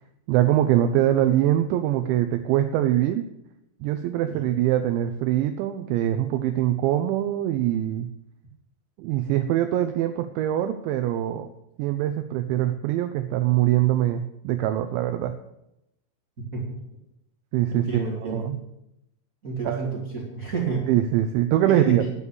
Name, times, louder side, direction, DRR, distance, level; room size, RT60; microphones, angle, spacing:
voice 1, 0.3-3.3 3.8-8.1 9.0-11.5 11.8-15.3 17.5-18.6 19.7-19.8 20.9-22.0, right 12 dB, 80° right, 8 dB, 2.7 m, -23 dB
voice 2, 17.7-18.5 19.4-20.9 21.7-22.1, right 5 dB, 35° right, -4 dB, 1.3 m, -30 dB
11.0 x 8.3 x 7.1 m, 0.85 s
omnidirectional pair, 5.7 m